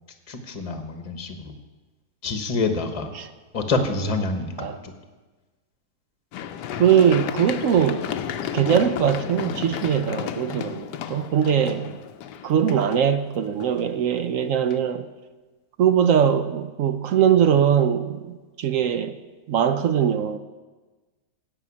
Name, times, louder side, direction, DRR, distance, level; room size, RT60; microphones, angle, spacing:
voice 1, 0.3-1.5 2.2-3.1 3.5-4.9, left 3 dB, 25° left, 1.0 m, -27 dB
Run, 6.3-14.2 14.7-14.8, left 9 dB, 80° left, 1.3 m, -33 dB
voice 2, 6.8-8.0 8.5-11.9 12.4-15.1 15.8-19.2 19.5-20.4, right 8 dB, 65° right, 0.8 m, -21 dB
16.5 x 5.6 x 8.5 m
omnidirectional pair, 1.8 m